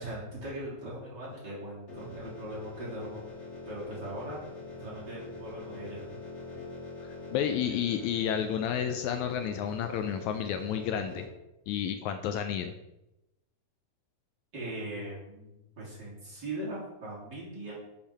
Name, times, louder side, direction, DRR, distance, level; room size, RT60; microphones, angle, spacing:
voice 1, 0.0-4.4 4.8-6.2 14.5-17.7, right 1 dB, 35° right, -7 dB, 3.0 m, -40 dB
sound 1, 1.9-11.2, left 2 dB, 25° left, 2.1 m, -44 dB
voice 2, 7.3-11.2 11.7-12.7, left 9 dB, 80° left, 8 dB, 1.8 m, -31 dB
6.8 x 5.5 x 5.6 m, 0.94 s
omnidirectional pair, 3.5 m